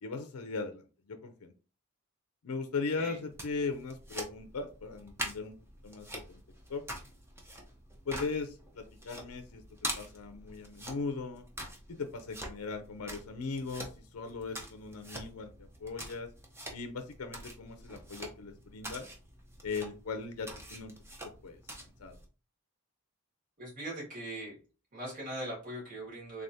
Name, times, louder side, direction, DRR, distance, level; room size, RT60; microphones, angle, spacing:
voice 1, 0.0-1.5 2.4-5.6 5.8-6.4 6.7-6.8 8.1-9.6 10.0-11.4 11.9-16.3 16.7-19.1 19.6-20.9 21.4-21.6 22.0-22.2, left 4 dB, 75° left, 7 dB, 0.5 m, -38 dB
sound 1, 3.3-22.2, right 1 dB, 10° right, 0.7 m, -45 dB
voice 2, 23.6-24.5 24.9-26.4, right 1 dB, 35° right, -5 dB, 2.1 m, -40 dB
3.6 x 3.4 x 2.7 m, 0.36 s
head